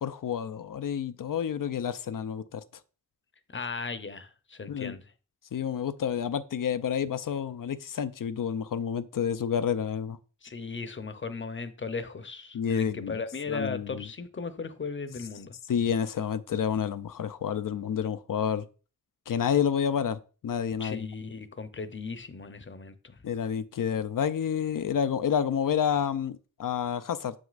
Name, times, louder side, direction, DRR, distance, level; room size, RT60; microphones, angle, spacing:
voice 1, 0.0-2.6 4.7-5.0 5.5-10.2 12.5-13.2 13.5-14.1 15.7-18.7 19.3-21.1 23.2-27.3, left 8 dB, 75° left, 0.5 m, -29 dB
voice 2, 3.5-5.1 10.4-15.5 20.8-23.2, left 4 dB, 35° left, 0.7 m, -37 dB
7.1 x 6.3 x 2.5 m
wide cardioid pair, 65°, 33 cm